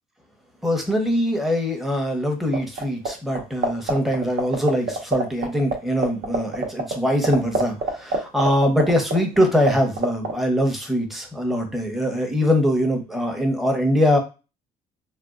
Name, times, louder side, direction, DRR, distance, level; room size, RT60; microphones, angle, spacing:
voice 1, 0.6-14.2, equal, ahead, 3 dB, 0.7 m, -22 dB
sound 1, 2.5-3.1 3.3-5.4 5.7-5.8 6.0-9.7 10.0-10.3, right 3 dB, 65° right, 0.9 m, -21 dB
3.5 x 2.2 x 2.4 m, 0.30 s
cardioid pair, 110°, 17 cm